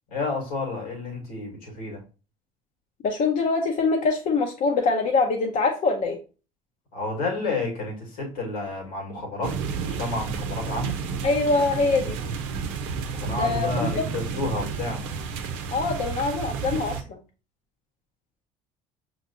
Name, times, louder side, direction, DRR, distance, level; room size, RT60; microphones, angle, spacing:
voice 1, 0.1-2.0 6.9-11.0 13.1-15.0, left 3 dB, 80° left, 1.8 m, -30 dB
voice 2, 3.0-6.2 11.2-12.2 13.3-14.0 15.7-17.2, left 3 dB, 50° left, 0.8 m, -24 dB
sound 1, 9.4-17.0, right 6 dB, 75° right, 0.7 m, -31 dB
5.9 x 3.0 x 2.7 m
hypercardioid pair, 65°, 17 cm